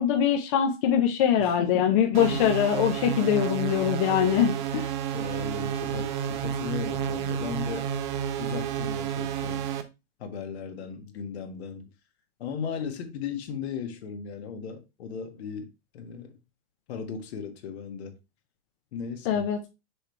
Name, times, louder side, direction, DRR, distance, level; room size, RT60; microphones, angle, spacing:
voice 1, 0.0-4.9 19.3-19.7, left 9 dB, 30° left, 0.5 m, -23 dB
voice 2, 1.4-2.4 5.1-7.9 8.4-9.7 10.2-11.9 12.4-16.4 16.9-18.1 18.9-19.5, left 6 dB, 60° left, 1.6 m, -36 dB
sound 1, 2.1-9.8, right 8 dB, 40° right, 0.7 m, -30 dB
6.4 x 3.3 x 4.4 m
supercardioid pair, 170°, 36 cm